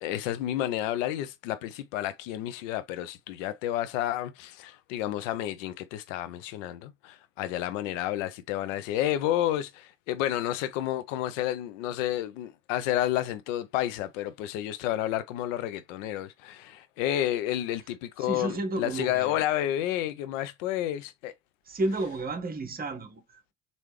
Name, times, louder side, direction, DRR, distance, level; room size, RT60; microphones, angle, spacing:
voice 1, 0.0-21.3, left 12 dB, 70° left, 0.6 m, -30 dB
voice 2, 18.2-19.4 21.7-23.5, right 2 dB, 25° right, 0.9 m, -32 dB
3.3 x 2.6 x 3.1 m
hypercardioid pair, 60°, 39 cm